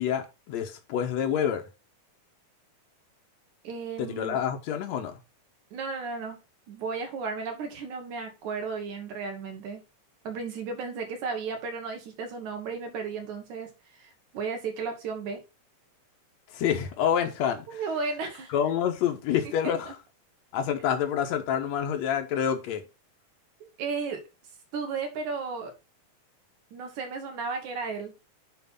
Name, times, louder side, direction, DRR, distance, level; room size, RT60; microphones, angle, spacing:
voice 1, 0.0-1.7 4.0-5.2 16.5-17.8 18.5-19.9 20.5-22.8, left 9 dB, 65° left, 2.3 m, -27 dB
voice 2, 3.6-4.4 5.7-6.4 6.7-9.8 10.2-13.7 14.0-15.4 17.7-18.5 19.9-20.0 23.6-24.2 24.7-25.7 26.7-28.1, right 5 dB, 75° right, 2.9 m, -34 dB
9.6 x 3.3 x 5.3 m
omnidirectional pair, 3.5 m